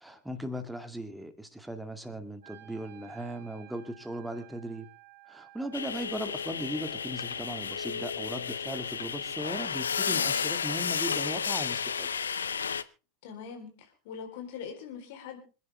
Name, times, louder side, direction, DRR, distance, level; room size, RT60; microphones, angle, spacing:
voice 1, 0.0-4.9 5.3-12.1, right 1 dB, 5° right, 8 dB, 2.2 m, -38 dB
Wind instrument woodwind instrument, 2.4-8.5, right 15 dB, 60° right, 3.3 m, -55 dB
sound 1, 5.7-12.8, left 6 dB, 75° left, 0.6 m, -32 dB
voice 2, 13.2-15.4, left 7 dB, 55° left, 5 dB, 4.1 m, -42 dB
26.5 x 10.5 x 3.5 m, 0.34 s
figure-of-eight pair, 85°, 0 cm